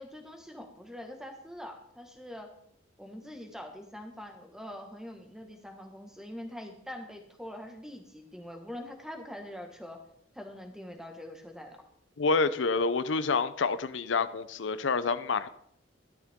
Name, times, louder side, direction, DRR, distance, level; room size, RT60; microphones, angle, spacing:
voice 1, 0.0-2.5 3.0-10.0 10.3-11.8, left 1 dB, 5° right, 4 dB, 1.5 m, -44 dB
voice 2, 12.2-15.5, left 4 dB, 80° left, 14 dB, 0.6 m, -28 dB
13.5 x 12.0 x 3.6 m, 0.69 s
head